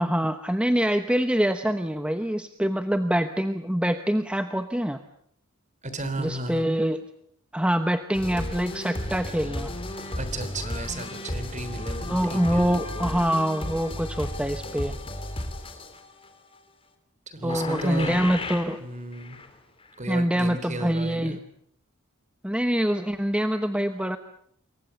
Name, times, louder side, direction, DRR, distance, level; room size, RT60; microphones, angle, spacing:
voice 1, 0.0-5.0 6.2-7.0 7.5-9.7 12.1-15.0 17.4-18.8 20.1-21.4 22.4-24.2, equal, 5° right, 8 dB, 0.9 m, -25 dB
voice 2, 5.8-6.7 10.1-12.7 17.3-18.2 18.8-19.4 20.0-21.4, right 1 dB, 35° right, 11 dB, 3.5 m, -34 dB
sound 1, 8.1-16.3 17.5-18.8 19.1-19.5 19.8-19.9, left 1 dB, 25° left, 3.2 m, -34 dB
27.5 x 23.0 x 7.0 m, 0.68 s
head